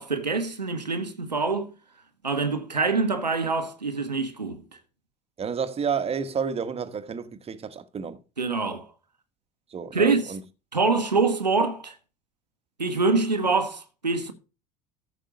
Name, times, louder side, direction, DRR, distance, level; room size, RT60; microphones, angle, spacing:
voice 1, 0.0-1.7 2.2-4.6 8.4-8.9 9.9-10.3 10.7-11.9 12.8-14.3, right 4 dB, 90° right, 1.1 m, -25 dB
voice 2, 5.4-8.2 9.7-10.4, right 6 dB, 30° right, 1.2 m, -30 dB
14.0 x 5.4 x 5.3 m
figure-of-eight pair, 65°, 21 cm